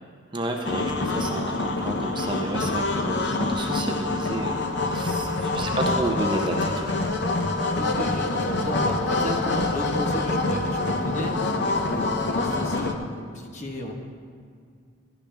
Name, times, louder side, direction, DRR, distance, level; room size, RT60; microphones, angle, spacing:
voice 1, 0.3-7.0, right 2 dB, 25° right, 1 dB, 0.7 m, -31 dB
sound 1, 0.6-12.9, left 2 dB, 55° left, 0.8 m, -26 dB
voice 2, 7.7-13.9, equal, 35° left, 1 dB, 1.2 m, -34 dB
13.0 x 11.5 x 3.4 m, 2.1 s
head